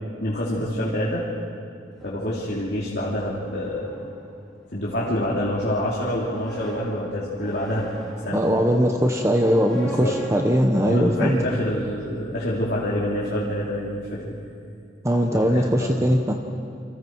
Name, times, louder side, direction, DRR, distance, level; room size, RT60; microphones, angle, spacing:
voice 1, 0.2-1.2 2.0-3.9 4.7-7.9 8.2-8.6 9.8-10.2 10.8-14.3 15.3-15.9, left 1 dB, 60° left, -6 dB, 3.0 m, -27 dB
sound 1, 1.9-11.9, right 1 dB, 5° left, 5.3 m, -42 dB
voice 2, 8.3-11.4 15.0-16.3, equal, 15° right, 3 dB, 1.0 m, -20 dB
28.0 x 25.5 x 4.7 m, 2.4 s
head